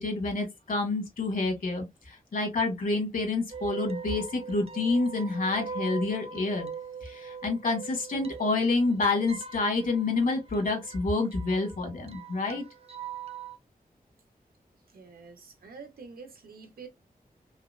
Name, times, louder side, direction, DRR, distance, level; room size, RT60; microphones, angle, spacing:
voice 1, 0.0-6.7 7.0-12.6, left 3 dB, 70° left, 1.9 m, -28 dB
sound 1, 3.5-13.6, right 6 dB, 40° right, 0.5 m, -42 dB
voice 2, 14.9-16.9, right 5 dB, 85° right, 1.0 m, -47 dB
5.4 x 2.0 x 2.5 m
wide cardioid pair, 140°, 15 cm